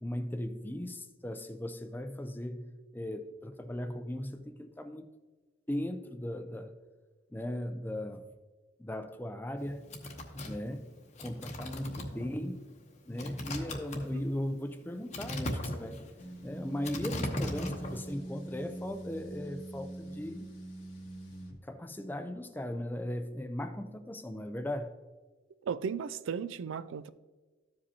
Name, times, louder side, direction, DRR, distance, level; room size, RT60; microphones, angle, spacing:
voice 1, 0.0-5.0 5.7-6.8 7.3-8.2 8.8-9.9 10.4-10.9 11.2-12.7 13.1-16.0 16.4-20.5 21.6-25.0, left 1 dB, 10° left, 0.4 m, -37 dB
sound 1, 9.6-18.1, left 1 dB, 35° left, 0.9 m, -38 dB
sound 2, 16.2-21.5, right 1 dB, 90° left, 1.5 m, -43 dB
voice 2, 25.6-27.1, right 6 dB, 80° right, 0.3 m, -35 dB
13.5 x 5.1 x 2.8 m
head